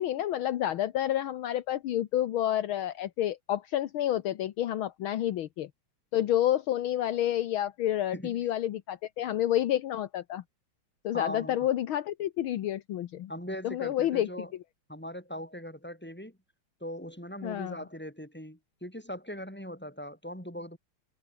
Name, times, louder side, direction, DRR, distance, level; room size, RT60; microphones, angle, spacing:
voice 1, 0.0-5.7 6.1-10.4 11.0-13.3 13.6-14.5 17.4-17.8, left 12 dB, 70° left, 1.7 m, -29 dB
voice 2, 11.1-11.6 13.3-14.5 14.9-16.4 16.8-20.8, equal, 5° left, 7.6 m, -40 dB
omnidirectional pair, 2.4 m